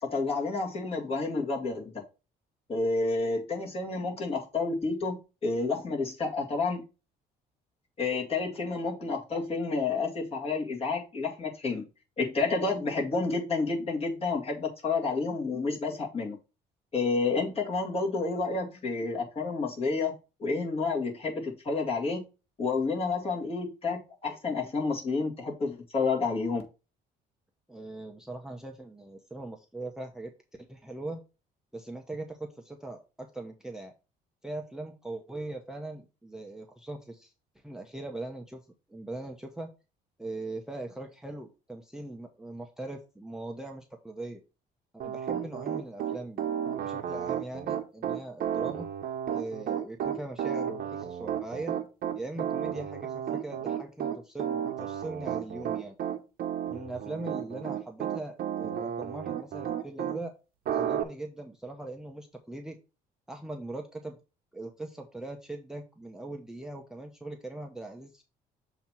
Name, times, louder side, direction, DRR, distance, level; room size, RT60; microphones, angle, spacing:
voice 1, 0.0-2.0 2.7-6.8 8.0-11.9 12.2-16.4 16.9-20.1 20.4-22.2 22.6-26.6, left 3 dB, 35° left, 2.1 m, -30 dB
voice 2, 27.7-30.3 30.7-31.2 31.7-33.9 34.4-37.3 37.6-38.6 38.9-39.7 40.2-44.4 44.9-46.5 46.8-48.9 49.3-51.7 52.2-55.9 56.7-60.3 60.7-62.8 63.3-64.2 64.5-68.2, right 2 dB, 5° right, 0.8 m, -40 dB
Piano, 45.0-60.2 60.6-61.0, right 9 dB, 60° right, 0.9 m, -32 dB
7.1 x 2.9 x 5.9 m
cardioid pair, 110°, 17 cm